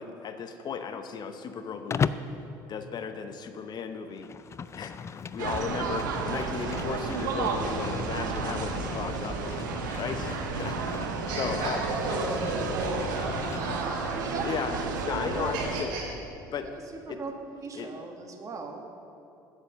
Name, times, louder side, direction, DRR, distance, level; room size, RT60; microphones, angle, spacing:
voice 1, 0.0-2.1 2.7-4.3 4.7-11.8 14.4-15.9 16.5-16.7 17.1-17.2 17.7-17.9, left 6 dB, 45° left, 8 dB, 0.9 m, -35 dB
Livestock farm animals working animals, 1.9-2.4 4.1-13.9, left 6 dB, 30° left, 0.3 m, -37 dB
sound 1, 5.4-15.9, right 5 dB, 90° right, 0.8 m, -32 dB
Cheering, 9.2-15.7, right 1 dB, 20° right, 2.8 m, -45 dB
voice 2, 11.2-14.0 15.5-16.0, right 2 dB, 70° right, -5 dB, 2.8 m, -33 dB
voice 3, 14.1-14.4 14.7-15.0 15.3-16.0 17.1-17.3 17.6-18.8, right 4 dB, 35° right, 3 dB, 1.6 m, -38 dB
8.3 x 8.1 x 6.5 m, 2.7 s
hypercardioid pair, 70°, 10 cm